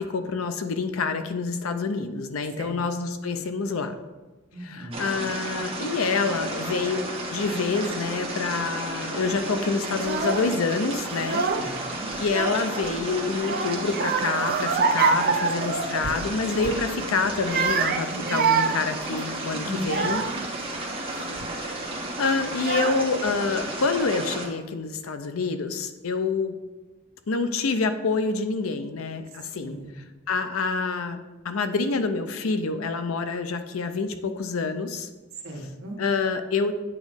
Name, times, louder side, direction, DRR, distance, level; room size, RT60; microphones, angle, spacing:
voice 1, 0.0-3.9 4.6-7.1 7.3-11.4 12.2-20.2 21.5-21.8 22.2-26.6 27.3-29.8 30.3-31.2 31.4-35.1 36.0-36.7, left 4 dB, 75° left, 9 dB, 0.6 m, -27 dB
voice 2, 4.5-5.0 11.5-12.1 19.6-20.3 29.5-29.9 35.4-36.0, equal, 65° right, -1 dB, 1.4 m, -37 dB
sound 1, 4.9-24.5, right 1 dB, 30° right, 1.2 m, -33 dB
Child speech kid speaking / Crying sobbing, 10.0-10.5 11.1-11.8 12.1-12.9 13.4-16.3 16.6-16.8 17.3-20.5 21.1-21.5 22.2-22.3 22.6-23.3, right 5 dB, 45° right, 0.4 m, -26 dB
8.4 x 3.1 x 5.1 m, 1.2 s
head